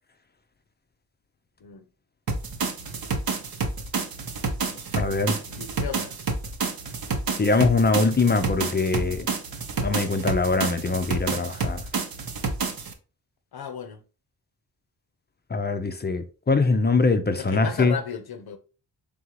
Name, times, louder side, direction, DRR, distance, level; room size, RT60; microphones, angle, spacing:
sound 1, 2.3-12.9, right 4 dB, 55° right, 0.8 m, -29 dB
voice 1, 5.0-5.4 7.4-9.3 9.8-11.8 15.5-18.0, left 3 dB, 25° left, 0.5 m, -22 dB
voice 2, 5.5-6.1 13.5-14.0 17.4-18.6, left 7 dB, 60° left, 0.7 m, -34 dB
3.7 x 3.5 x 3.0 m
wide cardioid pair, 90°, 43 cm